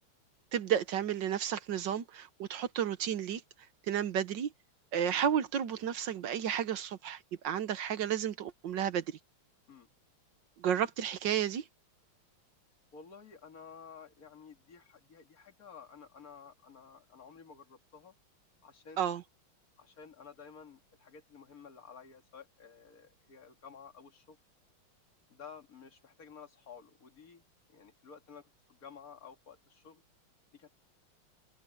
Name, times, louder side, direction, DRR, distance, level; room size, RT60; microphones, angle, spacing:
voice 1, 0.5-3.4 3.9-4.5 4.9-9.2 10.6-11.6 19.0-19.2, right 9 dB, 65° right, 1.5 m, -32 dB
voice 2, 12.9-18.1 18.6-19.1 19.8-24.4 25.3-30.0 30.5-30.7, left 6 dB, 45° left, 2.6 m, -53 dB
omnidirectional pair, 2.3 m